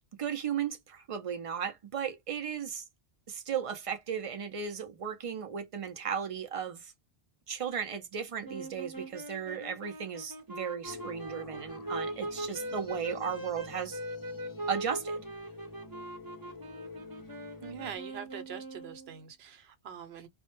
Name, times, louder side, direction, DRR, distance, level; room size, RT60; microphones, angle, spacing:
voice 1, 0.2-2.8 3.3-6.9 7.5-14.0 14.7-15.2, right 7 dB, 60° right, 0.3 m, -35 dB
sound 1, 8.4-19.2, right 1 dB, 25° right, 0.6 m, -41 dB
sound 2, 10.8-18.0, left 2 dB, 25° left, 0.5 m, -48 dB
voice 2, 17.6-20.3, right 8 dB, 75° right, 0.9 m, -43 dB
2.0 x 2.0 x 2.9 m
omnidirectional pair, 1.1 m